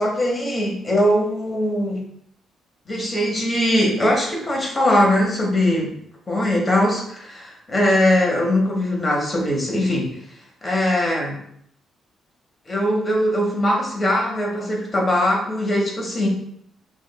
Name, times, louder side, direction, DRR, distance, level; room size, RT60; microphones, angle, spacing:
voice 1, 0.0-2.0 2.9-5.9 6.3-10.1 10.6-11.4 12.7-16.3, left 1 dB, 25° left, -1 dB, 1.3 m, -21 dB
6.2 x 2.5 x 2.3 m, 0.70 s
cardioid pair, 90°, 0 cm